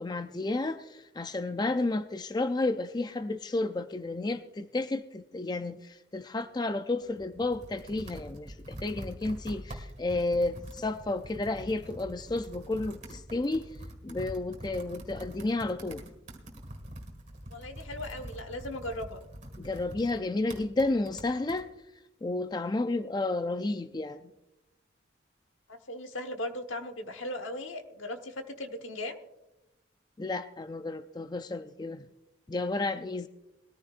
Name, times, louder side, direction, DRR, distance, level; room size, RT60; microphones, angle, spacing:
voice 1, 0.0-13.7 14.0-16.0 19.6-21.7 22.2-24.2 30.2-32.1 32.5-33.3, left 2 dB, 20° left, 10 dB, 0.3 m, -31 dB
Computer keyboard, 7.0-21.6, equal, 35° right, 1.8 m, -45 dB
voice 2, 17.5-19.2 25.7-29.2, left 1 dB, 80° left, 7 dB, 1.2 m, -38 dB
20.5 x 14.0 x 2.5 m, 0.95 s
head